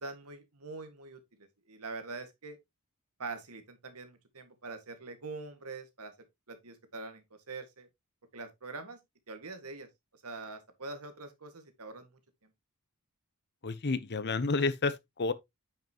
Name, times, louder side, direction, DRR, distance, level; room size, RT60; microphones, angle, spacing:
voice 1, 0.0-2.6 3.2-6.1 6.5-7.9 8.3-9.0 9.3-9.9 10.2-12.1, right 3 dB, 90° right, 1.8 m, -44 dB
voice 2, 13.6-15.3, left 3 dB, 50° left, 0.8 m, -30 dB
9.1 x 5.9 x 2.9 m
head